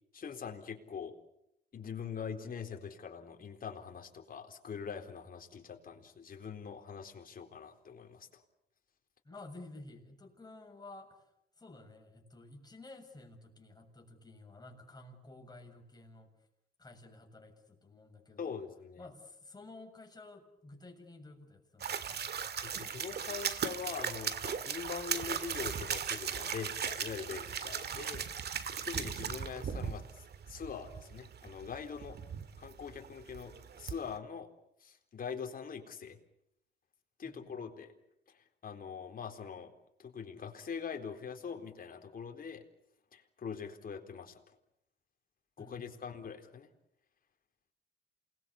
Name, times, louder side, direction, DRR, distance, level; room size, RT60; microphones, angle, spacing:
voice 1, 0.1-1.1 1.7-8.4 18.4-19.0 22.6-28.3 28.8-30.0 30.5-32.2 32.6-34.5 34.8-36.2 37.2-37.9 38.3-39.7 40.0-42.6 43.1-44.6 45.6-46.7, left 6 dB, 45° left, 4 dB, 4.1 m, -43 dB
voice 2, 9.2-11.3 11.6-16.3 16.8-18.6 19.0-22.2 28.7-28.9 37.2-37.7 45.6-46.0, left 2 dB, 20° left, 3 dB, 7.1 m, -52 dB
sound 1, 21.8-34.2, right 7 dB, 55° right, 2.0 m, -38 dB
28.5 x 20.5 x 8.5 m, 0.81 s
cardioid pair, 90°, 20 cm